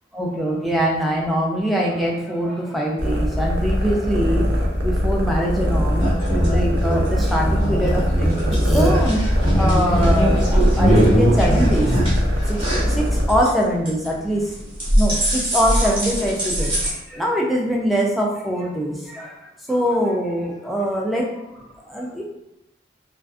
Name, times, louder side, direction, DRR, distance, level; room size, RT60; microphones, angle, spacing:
voice 1, 0.1-6.1 6.4-12.0 12.5-14.5 15.0-22.2, equal, ahead, -2 dB, 0.3 m, -23 dB
sound 1, 3.0-13.4, equal, 70° right, 0.5 m, -22 dB
sound 2, 6.0-13.5 13.9-14.2 14.5-16.9, equal, 25° right, 0.7 m, -20 dB
2.5 x 2.4 x 2.3 m, 0.88 s
head